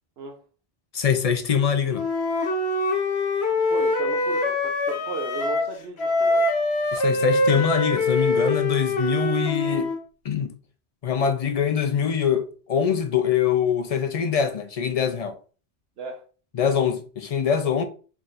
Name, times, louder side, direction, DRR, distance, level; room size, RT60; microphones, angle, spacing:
voice 1, 0.9-2.1 6.9-9.9 10.2-10.6 11.0-15.3 16.5-17.8, left 7 dB, 50° left, 0.4 m, -23 dB
Wind instrument woodwind instrument, 1.9-5.7 6.0-10.0, left 2 dB, 80° left, 1.0 m, -24 dB
voice 2, 3.7-6.5 16.0-16.2, right 4 dB, 70° right, 0.9 m, -35 dB
4.1 x 3.5 x 2.4 m
omnidirectional pair, 1.1 m